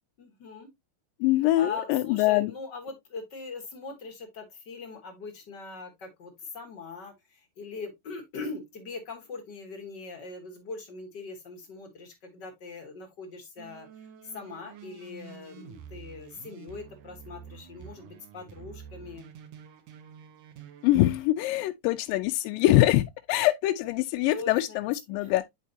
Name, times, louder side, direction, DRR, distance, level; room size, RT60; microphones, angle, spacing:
voice 1, 0.2-0.7 1.3-19.3 24.3-25.3, left 4 dB, 50° left, 1.3 m, -41 dB
voice 2, 1.2-2.5 20.8-25.5, left 16 dB, 85° left, 2.2 m, -24 dB
sound 1, 13.6-21.0, right 8 dB, 65° right, 1.8 m, -48 dB
9.3 x 4.6 x 2.7 m
omnidirectional pair, 3.9 m